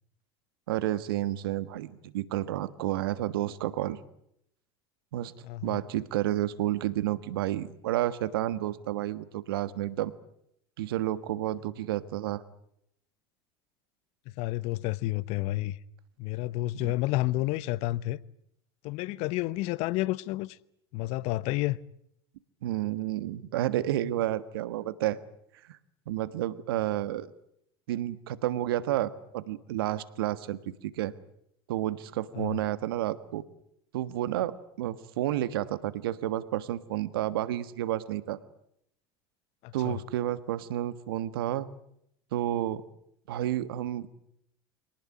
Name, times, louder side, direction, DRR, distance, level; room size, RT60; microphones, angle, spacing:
voice 1, 0.7-4.0 5.1-5.3 5.6-10.1 10.8-12.4 22.6-25.2 25.6-25.8 26.1-27.3 27.9-31.1 31.7-33.4 33.9-38.4 39.7-41.7 42.3-42.8 43.3-44.1, right 13 dB, 80° right, 1.5 m, -30 dB
voice 2, 5.4-5.8 14.4-15.8 16.2-18.2 18.8-20.6 20.9-21.8 32.3-32.6 39.6-40.0, left 18 dB, 65° left, 0.9 m, -30 dB
25.5 x 19.0 x 9.7 m
hypercardioid pair, 80°, 12 cm